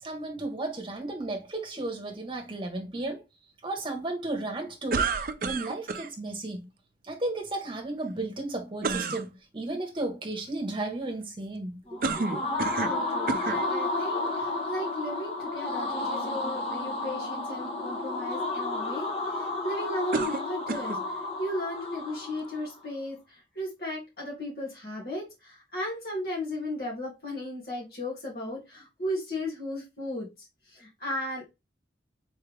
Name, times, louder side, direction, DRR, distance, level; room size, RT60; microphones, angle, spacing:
voice 1, 0.0-3.2 3.6-5.1 5.4-6.7 7.0-9.3 9.5-12.4, right 2 dB, 30° right, 1.1 m, -34 dB
sound 1, 4.9-6.1 8.8-9.2 12.0-13.0 13.3-13.6 14.4-14.5 20.1-21.0, right 4 dB, 50° right, 0.4 m, -30 dB
sound 2, 11.9-22.7, left 2 dB, 35° left, 1.0 m, -32 dB
voice 2, 12.8-31.5, left 1 dB, 60° left, 1.9 m, -36 dB
4.5 x 3.3 x 3.3 m
head